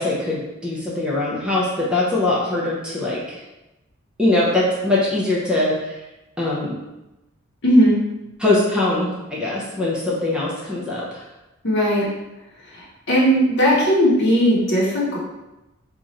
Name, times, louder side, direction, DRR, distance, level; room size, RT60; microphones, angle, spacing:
voice 1, 0.0-3.4 4.2-6.0 6.4-6.8 8.4-11.2, left 2 dB, 5° right, -6 dB, 0.6 m, -22 dB
voice 2, 7.6-8.0 11.6-12.1 12.7-15.2, equal, 55° left, -4 dB, 0.9 m, -17 dB
3.0 x 2.4 x 4.0 m, 0.98 s
head